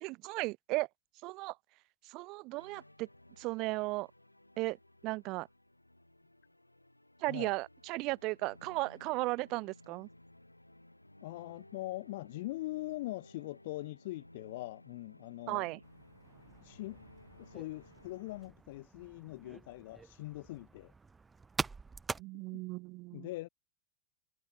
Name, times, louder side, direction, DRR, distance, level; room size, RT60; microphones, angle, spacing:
voice 1, 0.0-0.9 1.2-1.5 2.1-3.1 3.4-4.1 4.6-4.8 5.0-5.5 7.2-10.1 15.5-15.8 22.2-23.3, right 23 dB, 40° right, 0.4 m, -36 dB
sound 1, 2.6-18.5, left 1 dB, 85° left, 4.7 m, -59 dB
voice 2, 11.2-15.7 16.6-17.0 17.4-20.9 22.3-22.6 23.1-23.5, left 18 dB, 50° left, 3.0 m, -42 dB
sound 2, 15.8-22.2, right 4 dB, 15° right, 0.9 m, -45 dB
figure-of-eight pair, 90°, 0 cm